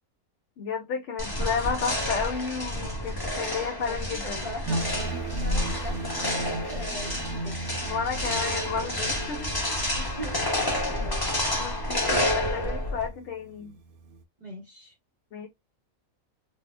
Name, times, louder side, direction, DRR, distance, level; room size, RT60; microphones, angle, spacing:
voice 1, 0.6-4.5 7.9-9.5 11.5-13.7 15.3-15.5, left 6 dB, 65° left, 0.8 m, -32 dB
sound 1, 1.2-13.1, left 1 dB, 20° left, 0.9 m, -29 dB
voice 2, 3.5-4.9 5.4-7.6 9.9-11.3 14.4-14.9, equal, 40° right, 0.8 m, -41 dB
sound 2, 4.7-14.2, right 2 dB, 90° right, 1.1 m, -37 dB
4.1 x 2.2 x 2.4 m
omnidirectional pair, 1.5 m